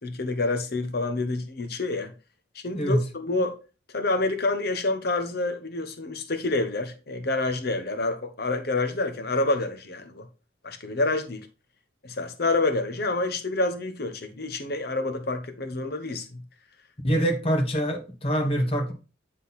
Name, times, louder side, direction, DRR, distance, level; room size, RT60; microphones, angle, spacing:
voice 1, 0.0-2.1 2.5-3.5 3.9-10.2 10.6-11.5 12.0-16.3 17.1-17.2, left 2 dB, 55° left, 1.0 m, -28 dB
voice 2, 17.0-18.9, equal, 30° left, 1.5 m, -24 dB
9.6 x 3.9 x 4.2 m
head